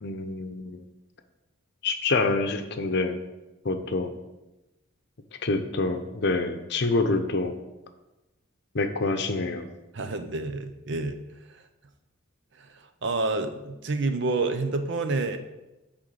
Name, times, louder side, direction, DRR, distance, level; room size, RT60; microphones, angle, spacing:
voice 1, 0.0-0.8 1.8-3.2 3.6-4.1 5.4-7.6 8.7-9.6, left 3 dB, 55° left, 7 dB, 0.7 m, -26 dB
voice 2, 9.9-11.2 11.5-11.6 12.5-15.4, right 3 dB, 55° right, 8 dB, 0.6 m, -29 dB
8.8 x 3.8 x 6.3 m, 1.0 s
head